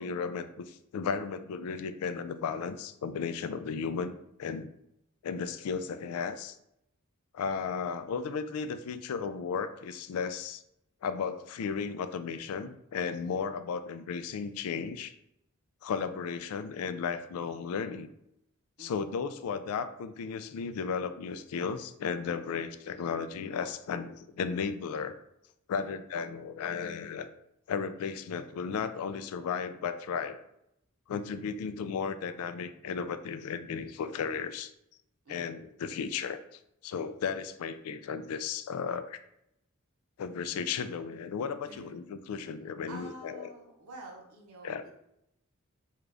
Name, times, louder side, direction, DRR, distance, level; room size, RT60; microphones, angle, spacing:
voice 1, 0.0-4.1 4.4-4.7 5.2-6.6 7.3-10.6 11.0-15.1 15.8-18.1 18.8-25.1 25.7-27.3 27.7-30.4 31.1-34.7 35.3-36.4 36.8-39.2 40.2-43.5 44.6-44.8, left 6 dB, 80° left, 11 dB, 0.3 m, -34 dB
voice 2, 18.8-19.1 22.5-22.7 25.8-26.0 35.2-35.6 41.7-42.0 42.9-44.9, right 1 dB, 90° right, 1 dB, 0.8 m, -49 dB
3.7 x 2.3 x 3.3 m, 0.79 s
head